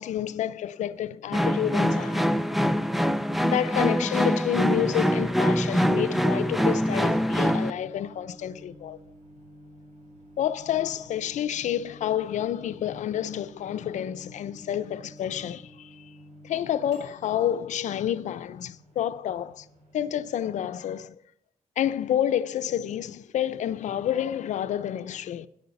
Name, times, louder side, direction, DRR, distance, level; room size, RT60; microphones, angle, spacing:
voice 1, 0.0-2.3 3.4-9.0 10.4-16.1 16.4-19.7 19.9-21.2 21.8-25.5, left 10 dB, 80° left, 0.6 m, -29 dB
sound 1, 1.3-7.7, equal, ahead, 0.4 m, -24 dB
Microwave oven, 6.8-20.3, equal, 80° right, 5.0 m, -51 dB
10.5 x 9.4 x 7.0 m
wide cardioid pair, 160°, 12 cm